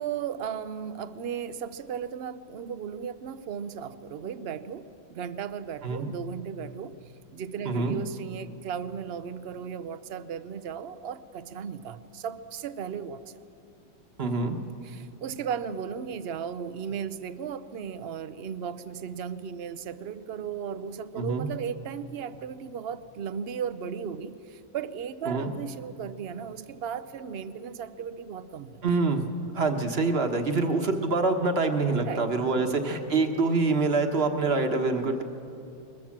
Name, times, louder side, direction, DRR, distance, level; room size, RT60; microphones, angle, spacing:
voice 1, 0.0-6.9 7.3-13.4 14.8-28.8 32.0-32.2 32.6-32.8, right 7 dB, 60° right, 13 dB, 0.6 m, -36 dB
voice 2, 7.6-8.0 14.2-14.6 21.2-21.5 25.2-25.5 28.8-29.2 29.5-35.2, right 3 dB, 40° right, 5 dB, 1.4 m, -25 dB
21.5 x 20.5 x 7.3 m, 2.7 s
omnidirectional pair, 1.8 m